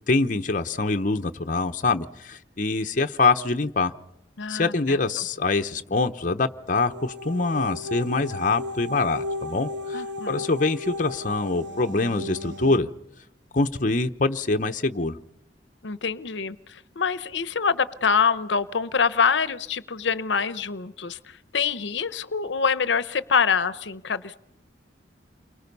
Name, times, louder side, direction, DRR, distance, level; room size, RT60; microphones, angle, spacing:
voice 1, 0.0-3.9 4.5-12.9 13.5-15.2, left 3 dB, 45° left, 7 dB, 0.9 m, -24 dB
voice 2, 4.4-5.0 9.9-10.5 15.8-24.4, left 6 dB, 80° left, 15 dB, 0.8 m, -25 dB
sound 1, 6.7-12.8, left 2 dB, 85° right, 1.2 m, -35 dB
29.5 x 24.0 x 5.4 m, 0.80 s
head